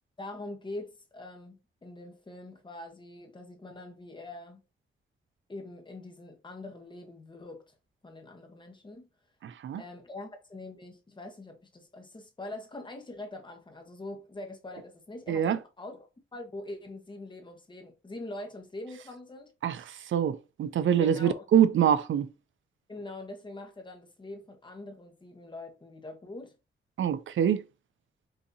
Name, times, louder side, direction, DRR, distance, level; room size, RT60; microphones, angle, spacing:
voice 1, 0.2-4.6 5.5-7.6 8.0-9.1 9.8-19.5 21.0-21.4 22.9-26.5, left 2 dB, 20° left, 1.0 m, -43 dB
voice 2, 9.4-9.8 15.3-15.6 19.6-22.3 27.0-27.6, right 9 dB, 70° right, 0.4 m, -25 dB
5.6 x 2.7 x 2.7 m
wide cardioid pair, 130°, 21 cm